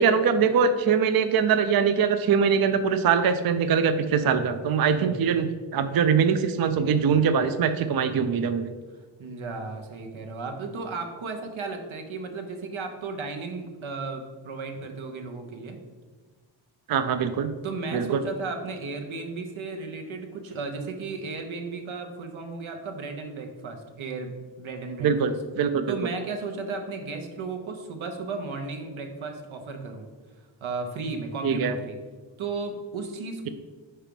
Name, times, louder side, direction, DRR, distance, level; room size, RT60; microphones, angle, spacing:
voice 1, 0.0-8.7 16.9-17.5 17.9-18.2 25.0-26.0 31.4-31.7, right 6 dB, 55° right, 9 dB, 0.5 m, -23 dB
voice 2, 9.2-15.8 17.6-25.1 25.9-30.1 30.6-32.0 32.4-33.5, right 4 dB, 90° right, 4 dB, 0.9 m, -34 dB
4.9 x 4.4 x 5.2 m, 1.4 s
wide cardioid pair, 95°, 46 cm